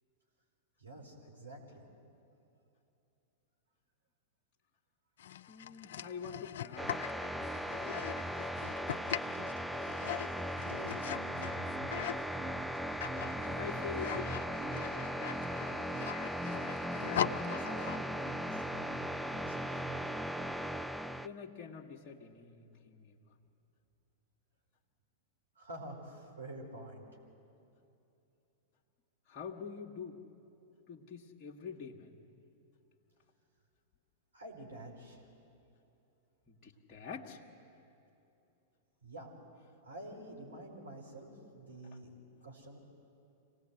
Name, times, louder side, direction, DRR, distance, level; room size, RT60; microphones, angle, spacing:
voice 1, 0.8-1.8 9.8-10.2 10.8-12.0 17.1-19.0 19.3-20.0 25.6-27.1 34.3-35.2 39.0-39.3 39.8-42.8, right 1 dB, 85° right, 0 dB, 4.1 m, -48 dB
sound 1, 5.2-12.3 12.7-18.1, left 11 dB, 65° left, 0.5 m, -41 dB
voice 2, 5.5-8.1 13.3-15.3 21.1-23.2 29.3-30.2 30.9-32.2 36.5-37.4, left 6 dB, 35° left, -3 dB, 1.7 m, -46 dB
sound 2, 6.8-21.3, equal, 5° right, 0.5 m, -38 dB
sound 3, 8.5-13.4, right 4 dB, 70° right, 2.9 m, -57 dB
26.0 x 18.0 x 8.0 m, 2.8 s
figure-of-eight pair, 100°, 0 cm